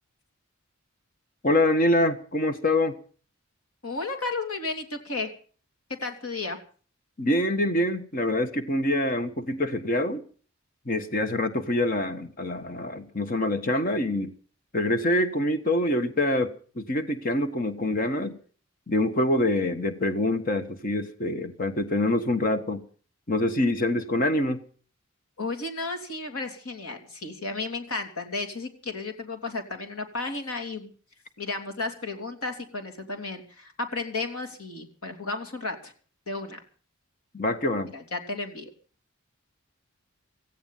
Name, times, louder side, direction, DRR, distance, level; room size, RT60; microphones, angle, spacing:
voice 1, 1.4-2.9 7.2-10.2 10.8-14.3 14.7-18.4 18.9-22.8 23.3-24.6 37.3-37.9, left 1 dB, 40° left, 1.3 m, -25 dB
voice 2, 3.8-5.3 6.0-6.6 25.4-30.9 31.4-35.9 36.3-36.6 37.9-38.7, left 3 dB, 80° left, 3.1 m, -33 dB
17.0 x 15.5 x 5.6 m
head